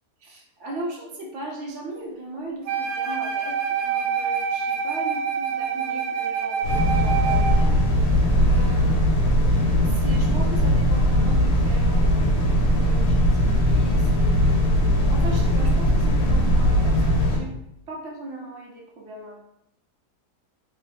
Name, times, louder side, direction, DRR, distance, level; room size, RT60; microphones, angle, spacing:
voice 1, 0.2-7.8 8.4-9.0 9.4-9.6 9.8-14.4 15.1-17.5 17.9-19.4, right 1 dB, 60° right, -1 dB, 0.9 m, -38 dB
Wind instrument woodwind instrument, 2.7-7.7, right 6 dB, 85° right, 1.2 m, -26 dB
sound 1, 6.6-17.4, equal, 80° left, 1.3 m, -19 dB
3.1 x 2.0 x 4.1 m, 0.79 s
omnidirectional pair, 1.7 m